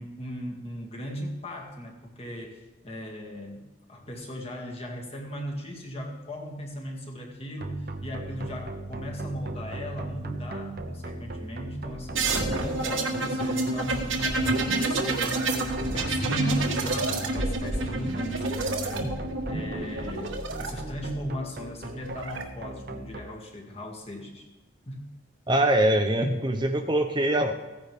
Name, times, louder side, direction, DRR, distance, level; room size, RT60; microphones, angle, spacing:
voice 1, 0.0-15.5 15.9-19.1 19.5-24.5 24.9-25.1, equal, 30° left, 0 dB, 2.2 m, -37 dB
sound 1, 7.6-23.2, right 2 dB, 50° right, 0.9 m, -38 dB
sound 2, 12.1-20.7 21.8-22.4, right 2 dB, 85° right, 1.6 m, -28 dB
voice 2, 25.5-27.5, right 1 dB, 25° right, 5 dB, 0.7 m, -23 dB
16.0 x 9.8 x 3.5 m, 1.1 s
head